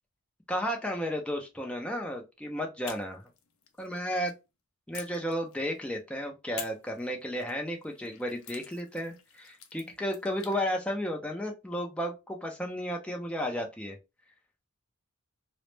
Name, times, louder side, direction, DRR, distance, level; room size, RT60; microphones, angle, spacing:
voice 1, 0.5-3.3 3.8-4.3 4.9-14.0, equal, 5° left, 1 dB, 0.3 m, -33 dB
sound 1, 2.8-4.4 4.9-6.0 6.6-10.6, left 8 dB, 65° left, 0.5 m, -48 dB
2.0 x 2.0 x 3.0 m, 0.25 s
head